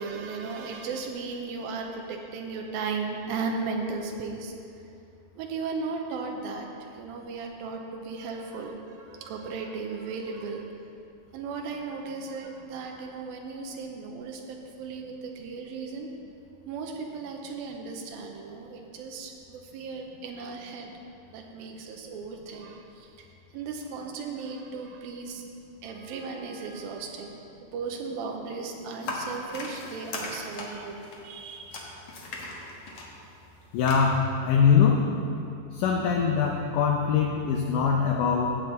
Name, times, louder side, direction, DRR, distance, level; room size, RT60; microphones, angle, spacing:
voice 1, 0.0-4.5 4.9-5.0 5.4-10.7 11.3-16.1 16.7-20.9 21.3-23.3 23.5-25.4 25.8-27.4 27.7-31.8, right 4 dB, 90° right, 2 dB, 2.6 m, -36 dB
sound 1, 29.0-33.9, left 2 dB, 55° left, 1.7 m, -38 dB
voice 2, 33.7-35.1 35.7-38.6, left 6 dB, 75° left, 0 dB, 2.0 m, -23 dB
15.5 x 8.5 x 4.0 m, 2.7 s
omnidirectional pair, 4.1 m